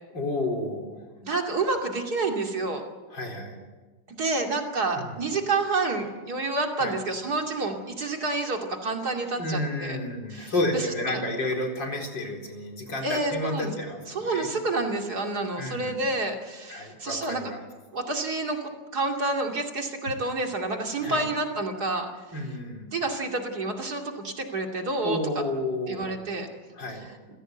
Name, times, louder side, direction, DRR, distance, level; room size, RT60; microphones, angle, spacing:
voice 1, 0.1-1.0 3.1-3.6 4.9-5.2 6.8-6.9 9.4-14.5 15.6-16.0 16.7-17.6 21.0-21.3 22.3-22.9 25.0-26.2 26.8-27.1, left 1 dB, 65° left, 2 dB, 4.9 m, -31 dB
voice 2, 1.2-2.8 4.1-10.0 10.3-11.2 13.0-13.7 14.1-17.5 17.9-22.1 22.9-25.2 25.9-26.5, right 3 dB, 50° right, 2 dB, 3.1 m, -29 dB
28.5 x 16.5 x 8.0 m, 1.3 s
omnidirectional pair, 2.2 m